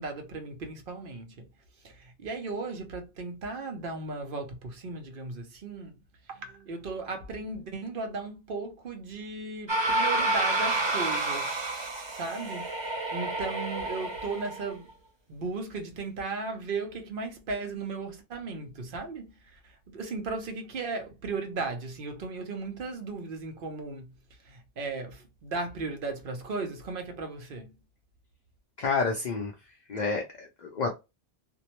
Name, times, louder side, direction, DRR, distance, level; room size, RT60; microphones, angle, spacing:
voice 1, 0.0-1.5 1.8-6.0 6.2-11.6 12.1-14.9 15.3-24.1 24.4-27.7, right 3 dB, 55° right, 0.8 m, -36 dB
sound 1, 9.7-14.7, right 2 dB, 35° right, 0.4 m, -29 dB
voice 2, 28.8-29.5 29.9-30.9, left 4 dB, 50° left, 0.5 m, -29 dB
2.6 x 2.0 x 2.9 m
omnidirectional pair, 1.2 m